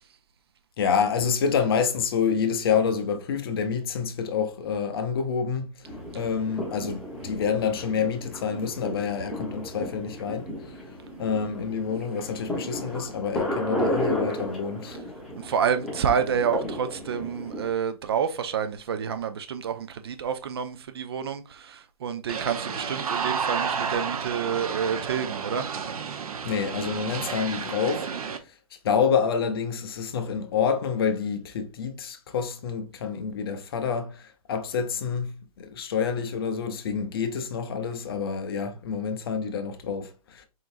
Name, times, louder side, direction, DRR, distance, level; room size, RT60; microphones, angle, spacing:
voice 1, 0.8-5.7 6.1-10.5 11.2-15.0 26.4-28.1 28.8-40.4, left 6 dB, 40° left, 0.7 m, -27 dB
sound 1, 5.8-17.7, equal, ahead, 1.1 m, -33 dB
voice 2, 15.4-25.7, right 7 dB, 45° right, 0.5 m, -28 dB
sound 2, 22.3-28.4, right 6 dB, 75° right, 0.8 m, -31 dB
4.4 x 3.8 x 2.6 m
hypercardioid pair, 165°, 19 cm